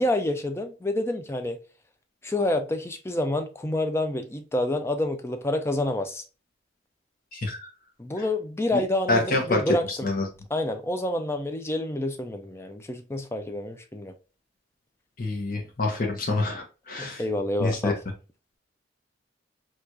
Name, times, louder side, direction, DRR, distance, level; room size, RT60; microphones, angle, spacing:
voice 1, 0.0-1.6 2.2-6.2 8.0-10.1 10.5-14.1 17.0-18.0, left 1 dB, 15° left, 0.4 m, -28 dB
voice 2, 9.1-10.3 15.2-17.2 17.6-18.0, left 2 dB, 45° left, 0.7 m, -27 dB
4.6 x 2.4 x 2.6 m
head